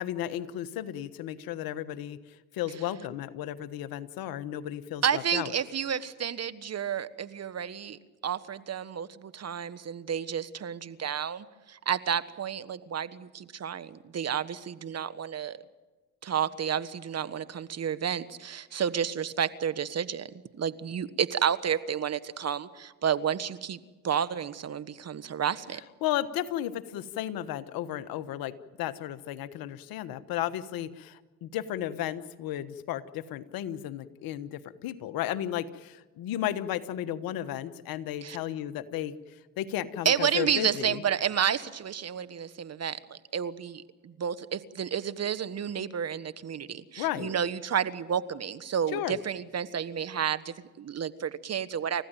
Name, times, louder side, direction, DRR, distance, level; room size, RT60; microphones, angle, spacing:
voice 1, 0.0-5.5 26.0-41.0 47.0-47.3 48.9-49.2, left 12 dB, 75° left, 12 dB, 1.3 m, -34 dB
voice 2, 5.0-15.6 16.2-20.3 20.5-25.8 38.2-38.4 40.0-52.0, right 8 dB, 45° right, 14 dB, 1.3 m, -31 dB
30.0 x 15.0 x 9.1 m, 1.2 s
supercardioid pair, 65°, 35 cm